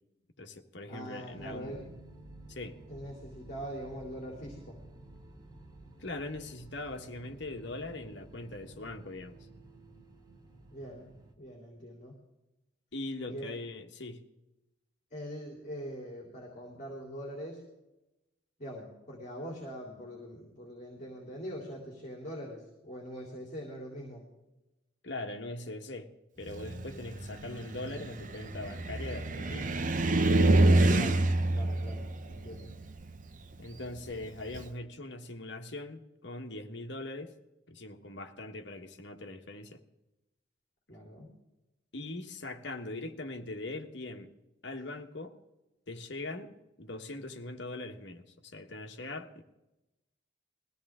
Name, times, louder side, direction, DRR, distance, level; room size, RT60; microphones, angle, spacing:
voice 1, 0.4-1.9 2.5-2.8 6.0-9.5 12.9-14.2 25.0-26.1 26.4-29.7 33.6-37.3 37.7-39.8 41.9-44.3 44.6-45.4 45.9-49.4, left 2 dB, 60° left, 1.5 m, -41 dB
voice 2, 0.9-1.9 2.9-4.8 10.7-12.2 13.3-13.6 15.1-17.6 18.6-24.2 30.9-31.2 31.5-32.7 40.9-41.3, equal, 40° left, 3.4 m, -43 dB
sound 1, 1.3-11.3, right 2 dB, 20° right, 1.8 m, -52 dB
Car, 26.5-34.7, right 2 dB, 40° right, 0.8 m, -28 dB
21.0 x 16.0 x 3.7 m
head